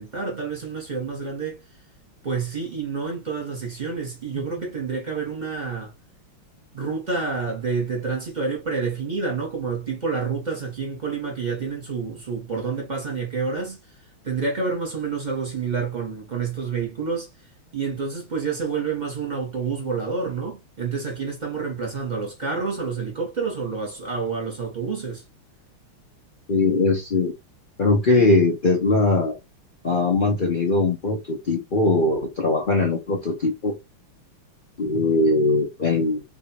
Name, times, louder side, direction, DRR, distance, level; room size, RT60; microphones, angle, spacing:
voice 1, 0.0-1.6 2.2-5.9 6.7-13.8 14.2-17.3 17.7-25.2, right 5 dB, 25° right, 1.3 m, -28 dB
voice 2, 26.5-27.3 27.8-29.4 29.8-33.7 34.8-36.2, left 2 dB, 85° left, 0.4 m, -21 dB
3.6 x 3.4 x 2.9 m
omnidirectional pair, 2.3 m